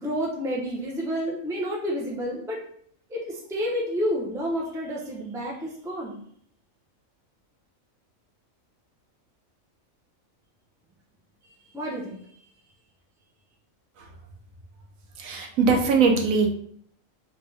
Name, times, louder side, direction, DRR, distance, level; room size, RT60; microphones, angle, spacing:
voice 1, 0.0-2.6 3.1-6.1 11.7-12.2, equal, 5° right, -3 dB, 0.4 m, -29 dB
voice 2, 15.2-16.5, right 4 dB, 75° right, 2 dB, 1.1 m, -21 dB
3.3 x 2.9 x 3.3 m, 0.63 s
omnidirectional pair, 1.4 m